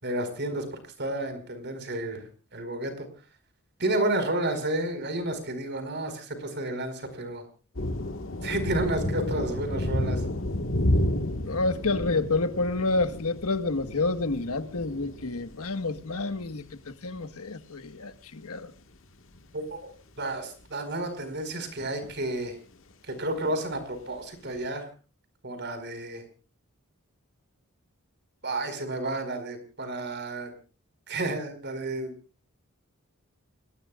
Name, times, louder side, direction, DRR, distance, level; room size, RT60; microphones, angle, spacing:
voice 1, 0.0-0.6 1.0-2.2 2.5-3.1 3.8-7.4 8.4-10.2 19.5-19.9 20.2-22.6 23.1-24.9 25.4-26.2 28.4-30.5 31.1-32.1, right 1 dB, 50° right, 4.7 m, -31 dB
sound 1, 7.7-16.7 17.2-17.3 19.3-19.4 21.8-21.9 22.1-22.2 23.4-23.5 24.2-24.3, left 1 dB, 60° left, 1.7 m, -31 dB
voice 2, 11.5-18.7, left 3 dB, 90° left, 1.5 m, -29 dB
29.5 x 19.0 x 2.4 m
head